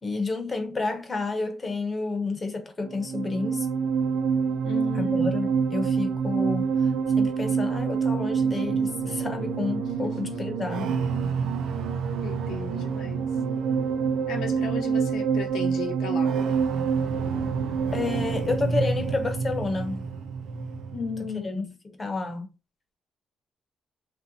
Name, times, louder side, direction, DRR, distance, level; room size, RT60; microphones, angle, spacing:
voice 1, 0.0-3.7 5.0-6.7 7.2-10.9 17.9-20.0 21.2-21.6 22.0-22.5, left 3 dB, 20° left, 0.6 m, -30 dB
sound 1, 2.8-21.3, right 6 dB, 90° right, 0.6 m, -27 dB
voice 2, 4.6-5.3 10.0-10.3 12.2-13.3 14.3-16.3 20.9-21.8, left 5 dB, 90° left, 0.8 m, -35 dB
3.1 x 2.7 x 2.5 m
cardioid pair, 175°, 0 cm